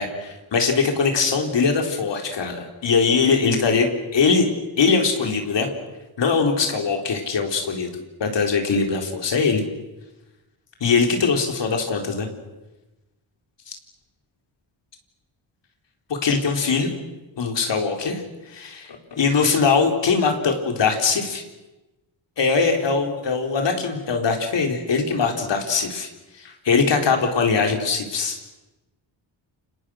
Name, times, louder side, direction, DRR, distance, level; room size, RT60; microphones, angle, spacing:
voice 1, 0.0-4.5 4.8-5.7 6.2-9.6 10.8-12.3 13.7-13.8 16.1-16.9 17.4-18.2 18.5-21.4 22.4-26.1 26.4-28.4, left 5 dB, 65° left, 3 dB, 4.1 m, -21 dB
29.5 x 27.5 x 6.4 m, 1.1 s
wide cardioid pair, 175°, 47 cm